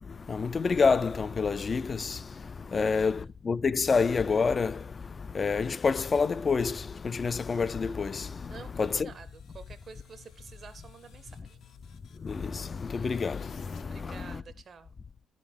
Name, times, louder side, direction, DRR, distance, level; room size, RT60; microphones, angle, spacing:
voice 1, 0.0-9.1 12.1-14.4, left 5 dB, 35° left, 0.3 m, -28 dB
voice 2, 2.7-3.3 8.5-11.6 13.8-14.9, right 6 dB, 50° right, 0.6 m, -49 dB
sound 1, 7.6-13.8, left 8 dB, 75° left, 0.9 m, -56 dB
11.0 x 5.1 x 5.2 m
cardioid pair, 90°, 0 cm